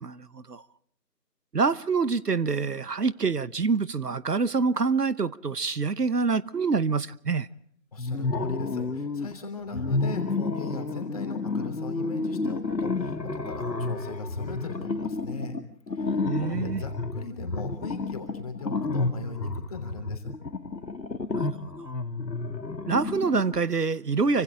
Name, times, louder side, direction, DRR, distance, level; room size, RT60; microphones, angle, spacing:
voice 1, 0.0-0.6 1.5-7.5 16.2-16.8 21.3-21.5 21.8-21.9 22.9-24.4, right 4 dB, 65° right, 1.1 m, -26 dB
voice 2, 7.9-15.6 15.9-20.3, left 3 dB, 20° left, 3.2 m, -39 dB
sound 1, 8.0-9.3 9.7-23.6, left 3 dB, 80° left, 1.9 m, -31 dB
30.0 x 25.5 x 3.6 m
figure-of-eight pair, 165°, 50 cm